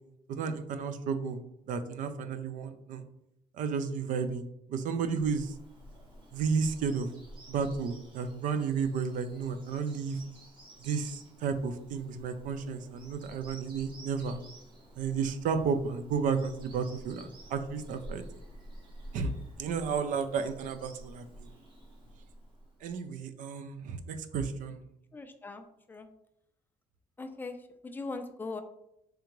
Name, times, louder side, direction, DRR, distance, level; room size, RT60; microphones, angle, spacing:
voice 1, 0.3-1.4 1.7-3.0 3.6-5.5 6.3-7.1 7.5-10.2 10.8-14.4 15.0-18.2 19.1-19.3 19.6-21.5 22.8-24.8, right 5 dB, 70° right, 10 dB, 0.4 m, -32 dB
Bird vocalization bird call bird song, 4.9-22.9, right 1 dB, 35° right, 1.0 m, -51 dB
voice 2, 25.1-26.1 27.2-27.6 27.8-28.6, left 3 dB, 15° left, 7 dB, 0.3 m, -40 dB
3.7 x 3.4 x 3.0 m, 0.80 s
cardioid pair, 150°, 14 cm